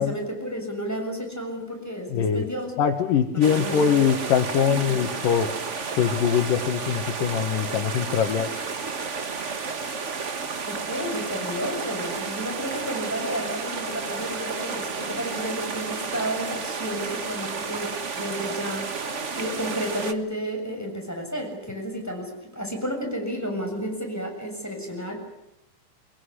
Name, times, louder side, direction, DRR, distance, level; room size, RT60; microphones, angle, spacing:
voice 1, 0.0-2.7 3.3-4.0 4.7-5.0 10.7-25.2, equal, 5° left, 2 dB, 6.7 m, -32 dB
voice 2, 2.1-2.5 2.8-5.5 6.0-8.6, left 7 dB, 85° left, 2 dB, 3.2 m, -23 dB
sound 1, 3.4-20.1, right 5 dB, 65° right, 0.7 m, -32 dB
25.5 x 23.0 x 9.9 m, 0.84 s
omnidirectional pair, 3.7 m